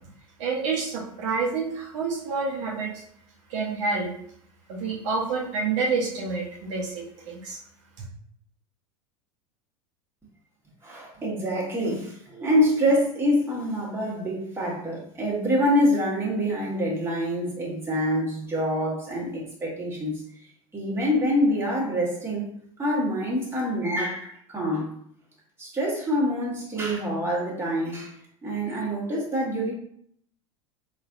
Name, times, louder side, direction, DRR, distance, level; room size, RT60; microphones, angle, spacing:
voice 1, 0.4-3.0 3.5-4.1 4.7-7.6, right 4 dB, 65° right, -2 dB, 0.8 m, -28 dB
voice 2, 10.8-20.2 20.7-22.5 22.8-24.9 25.6-28.1 28.4-29.7, equal, 15° right, -4 dB, 1.3 m, -26 dB
3.9 x 2.5 x 2.4 m, 0.64 s
hypercardioid pair, 90°, 17 cm